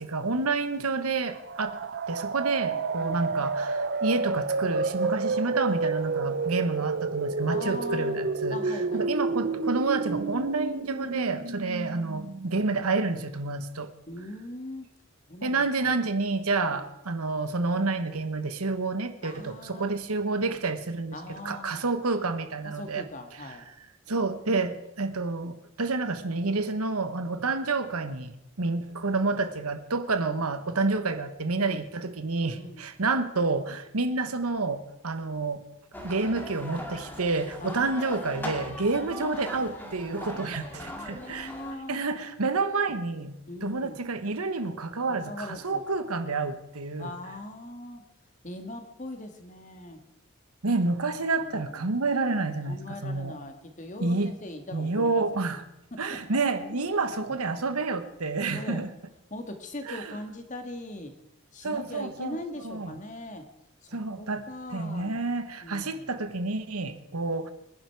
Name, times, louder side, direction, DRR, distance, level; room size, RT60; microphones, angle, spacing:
voice 1, 0.0-13.9 15.4-23.1 24.1-35.6 36.0-41.5 41.9-47.1 50.6-53.4 54.0-54.3 54.7-55.6 56.0-58.9 59.9-60.2 61.6-63.0 63.9-64.4 64.7-67.5, right 3 dB, 85° right, 10 dB, 1.3 m, -29 dB
sound 1, 1.4-13.0, right 4 dB, 50° right, 0.6 m, -30 dB
voice 2, 7.5-8.2 8.5-9.0 14.1-14.9 15.3-15.6 16.7-16.8 19.2-19.9 21.1-21.8 22.6-23.7 31.5-31.8 32.5-32.8 37.6-38.3 39.0-39.4 40.5-42.0 43.5-44.0 45.2-45.8 47.0-48.0 48.4-50.0 51.4-51.8 52.6-55.2 55.9-56.2 56.9-57.0 58.5-58.9 59.3-61.1 61.5-63.5 63.8-65.2 65.6-66.1, left 1 dB, 35° left, 6 dB, 1.8 m, -40 dB
sound 2, 35.9-41.8, left 1 dB, 10° left, 2.1 m, -40 dB
25.0 x 10.5 x 4.8 m, 0.85 s
head